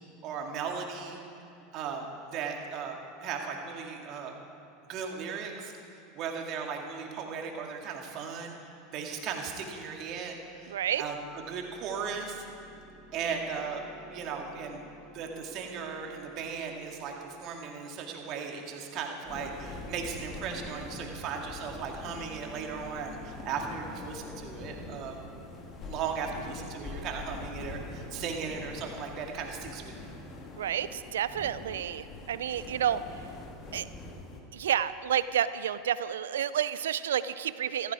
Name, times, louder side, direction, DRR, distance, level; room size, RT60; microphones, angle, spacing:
voice 1, 0.2-1.2 1.7-4.4 4.9-5.7 6.1-12.4 13.1-13.8 14.1-14.8 15.1-25.2 25.9-30.1, right 6 dB, 50° right, 2 dB, 2.3 m, -37 dB
sound 1, 7.5-8.3 10.6-25.3, right 1 dB, 15° right, 1.5 m, -53 dB
voice 2, 10.7-11.0 30.5-33.0 33.7-33.9 34.5-37.9, right 10 dB, 85° right, 15 dB, 0.5 m, -30 dB
sound 2, 19.2-34.4, left 2 dB, 40° left, 2.3 m, -44 dB
15.0 x 14.5 x 4.9 m, 2.8 s
hypercardioid pair, 95°, 0 cm